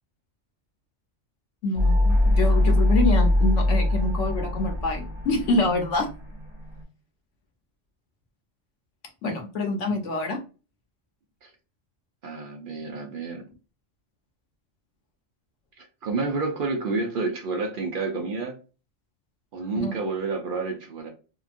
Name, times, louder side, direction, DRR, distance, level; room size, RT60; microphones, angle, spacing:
voice 1, 1.6-6.1 9.2-10.4 19.8-19.9, left 2 dB, 70° left, 3 dB, 1.0 m, -26 dB
sound 1, 1.8-6.8, left 1 dB, 25° right, 1.1 m, -22 dB
voice 2, 12.2-13.4 15.8-18.5 19.5-21.1, right 3 dB, 60° right, 2 dB, 0.5 m, -29 dB
2.8 x 2.3 x 2.5 m, 0.34 s
omnidirectional pair, 1.3 m